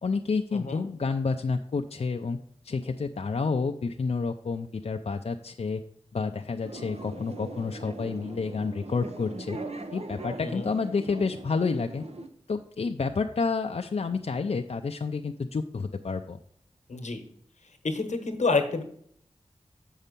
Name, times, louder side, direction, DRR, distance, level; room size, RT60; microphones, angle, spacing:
voice 1, 0.0-2.4 2.6-5.8 6.1-9.6 9.9-12.0 12.5-16.4, left 4 dB, 60° left, 4 dB, 0.5 m, -29 dB
voice 2, 0.5-0.9 10.4-10.7 16.9-17.2 17.8-18.8, left 3 dB, 90° left, 7 dB, 1.1 m, -28 dB
sound 1, 6.6-12.3, right 2 dB, 60° right, 0.8 m, -40 dB
7.1 x 5.6 x 5.2 m, 0.64 s
wide cardioid pair, 55°, 12 cm